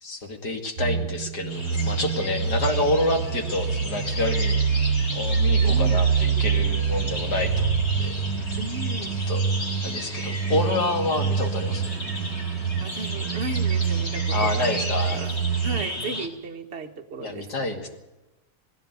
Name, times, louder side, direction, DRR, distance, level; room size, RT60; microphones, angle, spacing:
voice 1, 0.0-4.6 5.1-8.1 9.3-9.4 9.8-11.9 14.3-15.2 17.2-17.9, left 2 dB, 60° left, 4 dB, 2.9 m, -28 dB
sound 1, 0.8-15.9, right 6 dB, 80° right, 1.7 m, -26 dB
sound 2, 1.5-16.3, left 1 dB, 35° left, 3.3 m, -35 dB
voice 2, 5.6-6.1 8.6-9.2 12.8-14.7 15.1-15.3 15.6-17.8, right 2 dB, 40° right, 3 dB, 1.3 m, -35 dB
20.0 x 16.0 x 8.2 m, 1.1 s
omnidirectional pair, 1.9 m